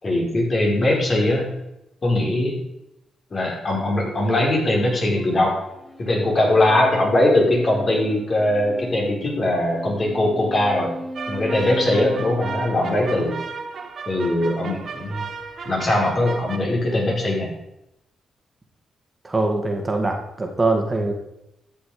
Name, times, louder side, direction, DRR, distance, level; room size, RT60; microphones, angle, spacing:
voice 1, 0.0-1.5 2.0-2.6 3.3-5.6 6.0-10.9 11.3-13.4 14.1-15.2 15.6-17.5, left 1 dB, 45° left, -2 dB, 4.8 m, -21 dB
sound 1, 3.8-13.5, right 1 dB, ahead, 1.7 m, -38 dB
sound 2, 11.2-16.6, right 5 dB, 60° right, 1.3 m, -34 dB
voice 2, 19.2-21.1, right 2 dB, 25° right, 2 dB, 2.1 m, -22 dB
12.5 x 7.1 x 5.0 m, 0.84 s
supercardioid pair, 55°, 0 cm